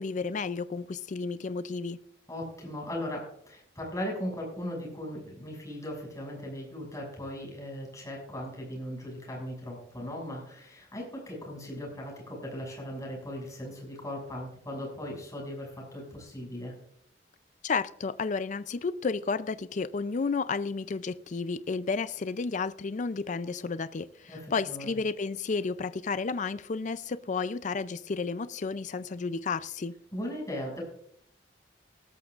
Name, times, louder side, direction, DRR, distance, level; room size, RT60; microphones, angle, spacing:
voice 1, 0.0-2.0 17.6-29.9, left 4 dB, 45° left, 0.4 m, -32 dB
voice 2, 2.3-16.7 24.3-25.0 30.1-30.8, left 1 dB, 20° left, 6.7 m, -38 dB
18.5 x 13.0 x 2.5 m
head